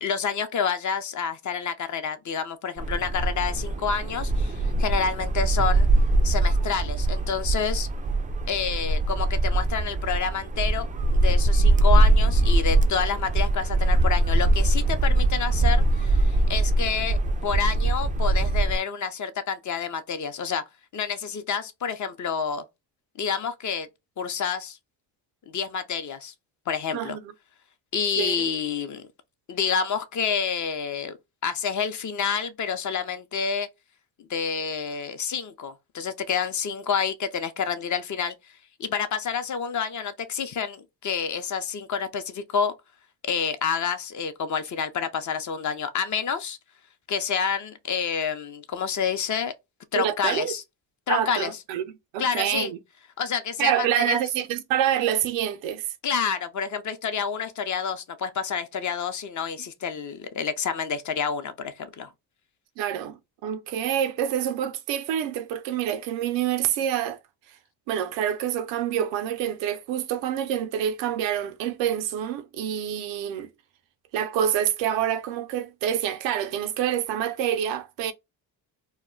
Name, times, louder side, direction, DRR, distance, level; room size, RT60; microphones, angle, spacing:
voice 1, 0.0-5.9 6.2-7.9 8.5-10.9 11.1-20.6 20.9-22.6 23.2-23.9 24.2-24.8 25.5-26.3 26.7-27.2 27.9-29.1 29.5-31.2 31.4-33.7 34.2-38.3 38.8-42.7 43.2-46.6 47.1-49.5 49.9-50.6 51.1-51.5 52.2-52.7 53.2-54.2 56.0-62.1, left 6 dB, 45° left, 0.6 m, -28 dB
sound 1, 2.8-18.8, right 2 dB, 20° right, 0.3 m, -22 dB
voice 2, 28.2-28.5 49.9-50.6 51.1-51.8 52.1-52.8 53.6-55.9 62.8-67.2 67.9-73.5 74.1-78.1, right 10 dB, 85° right, 0.6 m, -27 dB
2.2 x 2.1 x 3.7 m
supercardioid pair, 75°, 43 cm